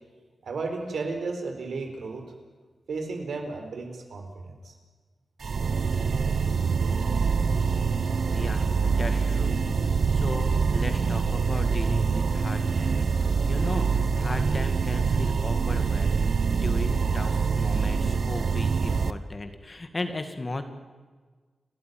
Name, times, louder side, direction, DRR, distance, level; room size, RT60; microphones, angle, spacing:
voice 1, 0.4-2.2 2.9-4.7, right 3 dB, 75° right, 4 dB, 4.4 m, -33 dB
sound 1, 5.4-19.1, right 5 dB, 60° right, 0.9 m, -25 dB
voice 2, 8.3-9.6 10.1-20.6, left 2 dB, 30° left, 7 dB, 2.0 m, -36 dB
29.5 x 13.5 x 9.4 m, 1.4 s
wide cardioid pair, 135°, 0 cm